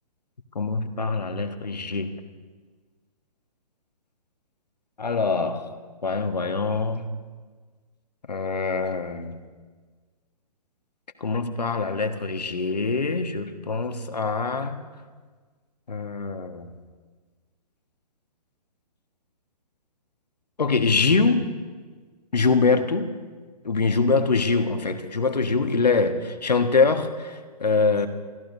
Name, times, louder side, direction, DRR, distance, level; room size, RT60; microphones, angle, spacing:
voice 1, 0.5-2.1 5.0-5.6 6.0-7.1 8.3-9.4 11.2-14.8 15.9-16.7 20.6-21.5 22.3-23.1 23.6-28.1, left 4 dB, 75° left, 6 dB, 1.5 m, -24 dB
29.5 x 14.5 x 2.7 m, 1.5 s
figure-of-eight pair, 130°, 21 cm